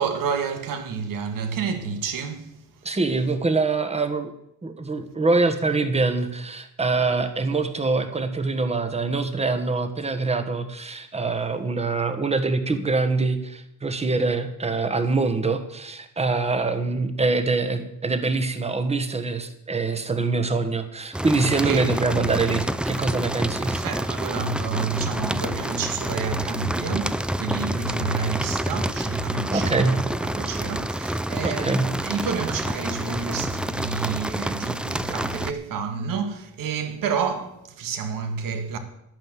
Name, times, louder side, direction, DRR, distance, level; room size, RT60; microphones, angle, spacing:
voice 1, 0.0-2.8 21.4-22.0 23.3-23.4 23.6-38.8, right 5 dB, 80° right, 2.1 m, -29 dB
voice 2, 2.8-4.3 4.6-23.8 29.5-30.0 31.4-31.9, right 3 dB, 20° right, 1.4 m, -24 dB
sound 1, 21.1-35.5, right 1 dB, 5° right, 0.4 m, -28 dB
11.5 x 9.1 x 7.5 m
cardioid pair, 140°, 33 cm